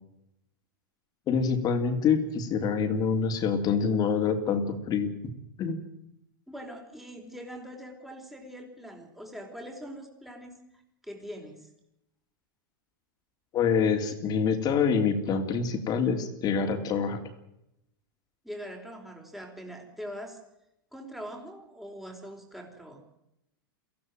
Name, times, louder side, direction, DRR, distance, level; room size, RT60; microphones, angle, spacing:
voice 1, 1.3-5.3 5.6-5.8 13.5-17.2, left 6 dB, 35° left, 6 dB, 3.3 m, -26 dB
voice 2, 6.5-11.7 18.4-20.4 20.9-23.0, equal, ahead, 2 dB, 4.7 m, -43 dB
23.5 x 16.5 x 9.4 m, 0.85 s
hypercardioid pair, 120°, 12 cm